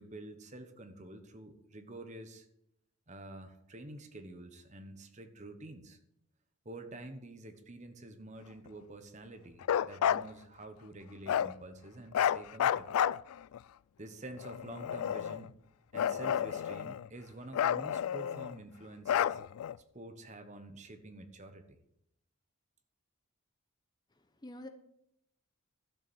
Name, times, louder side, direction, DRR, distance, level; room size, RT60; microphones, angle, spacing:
voice 1, 0.0-2.5 3.1-6.0 6.6-12.9 14.0-15.5 15.9-19.4 19.9-21.8, right 2 dB, 35° right, 8 dB, 1.1 m, -48 dB
Bark, 9.6-10.3 11.3-11.5 12.1-13.6 14.4-15.5 15.9-17.1 17.5-18.6 19.1-19.8, left 9 dB, 85° left, 0.3 m, -31 dB
voice 2, 24.1-24.7, left 1 dB, 20° left, 8 dB, 0.8 m, -48 dB
12.0 x 6.8 x 7.1 m, 0.77 s
head